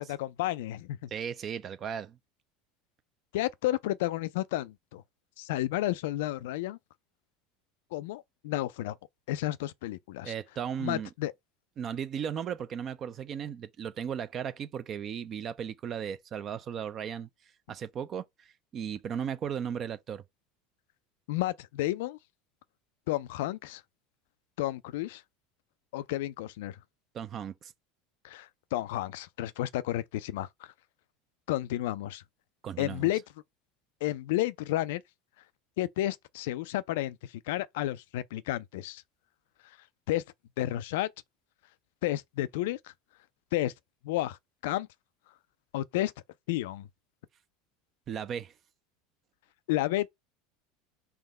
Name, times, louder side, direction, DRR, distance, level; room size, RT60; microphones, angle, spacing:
voice 1, 0.0-1.1 3.3-5.0 5.4-6.8 7.9-9.0 9.3-10.3 10.8-11.3 21.3-22.2 23.1-23.8 24.6-25.2 25.9-26.8 28.2-30.5 31.5-32.2 32.8-33.2 34.0-35.0 35.8-39.0 40.1-40.2 40.6-41.1 42.0-42.9 43.5-43.7 44.0-44.4 44.6-44.9 45.7-46.1 46.5-46.9 49.7-50.1, left 15 dB, 60° left, 0.3 m, -31 dB
voice 2, 1.1-2.2 10.2-11.1 11.8-17.3 17.7-20.2 27.1-27.7 32.6-33.1 48.1-48.5, right 8 dB, 35° right, 0.5 m, -36 dB
3.6 x 2.9 x 4.1 m
figure-of-eight pair, 75°, 0 cm